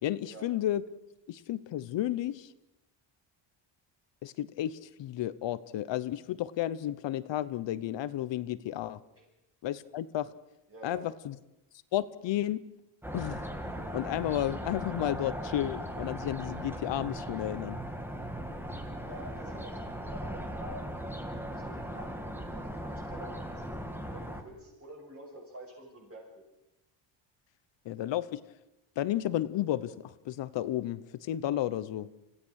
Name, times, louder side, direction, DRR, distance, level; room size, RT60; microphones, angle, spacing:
voice 1, 0.0-0.8 1.3-2.5 4.2-9.0 9.6-10.3 10.8-11.3 11.9-12.6 13.1-13.4 13.7-17.8 27.8-28.4 29.0-32.1, left 13 dB, 70° left, 16 dB, 1.0 m, -32 dB
voice 2, 10.7-11.1 19.0-20.8 21.5-26.4, right 1 dB, 30° right, -6 dB, 7.0 m, -48 dB
sound 1, 13.0-24.4, equal, 5° right, 1.9 m, -38 dB
26.0 x 16.0 x 6.5 m, 0.91 s
cardioid pair, 115°, 46 cm